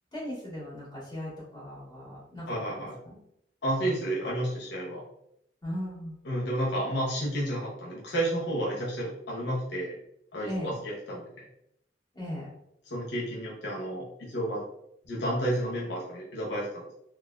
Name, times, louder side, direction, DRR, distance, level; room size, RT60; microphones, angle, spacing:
voice 1, 0.1-3.2 5.6-6.2 10.4-10.8 12.1-12.6, equal, 25° left, -7 dB, 1.4 m, -38 dB
voice 2, 2.5-3.0 3.6-5.0 6.3-9.9 10.3-11.2 12.9-14.6 15.0-16.9, right 1 dB, 70° left, -5 dB, 0.7 m, -31 dB
3.8 x 2.4 x 2.3 m, 0.77 s
head